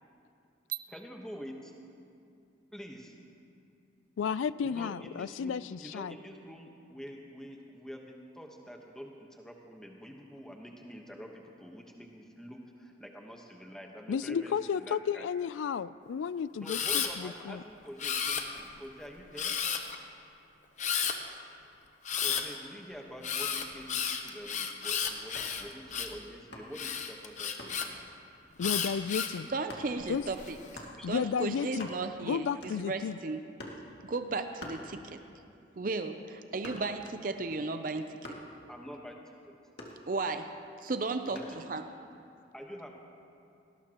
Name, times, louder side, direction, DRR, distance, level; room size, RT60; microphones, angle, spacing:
voice 1, 0.9-1.7 2.7-3.2 4.6-15.3 16.6-19.6 22.2-28.0 31.0-31.1 36.7-36.8 38.7-39.6 41.2-41.4 42.5-42.9, equal, 5° left, 0 dB, 1.2 m, -46 dB
voice 2, 4.2-6.2 14.1-17.6 28.6-29.5 30.1-30.2 31.0-31.9 32.2-33.2, left 6 dB, 85° left, 17 dB, 0.3 m, -33 dB
Camera, 16.7-17.1 18.0-18.8 19.4-20.0 20.8-21.2 22.0-22.4 23.2-26.2 26.7-27.9 28.6-29.4 30.0-30.5, left 7 dB, 40° left, 0.8 m, -32 dB
sound 1, 25.3-25.6 26.5-26.9 27.6-27.8 28.6-28.9 29.7-29.9 30.7-31.0 31.4-31.5 31.7-32.2 32.6-33.0 33.6-33.9 34.6-35.3 35.7-37.1 38.2-38.6 39.8-40.4 41.4-41.6, left 1 dB, 60° left, 2.1 m, -46 dB
voice 3, 29.5-33.4 34.0-35.2 35.8-38.2 40.1-40.5 40.8-41.8, right 3 dB, 45° right, 8 dB, 0.5 m, -35 dB
19.0 x 18.5 x 3.0 m, 2.5 s
head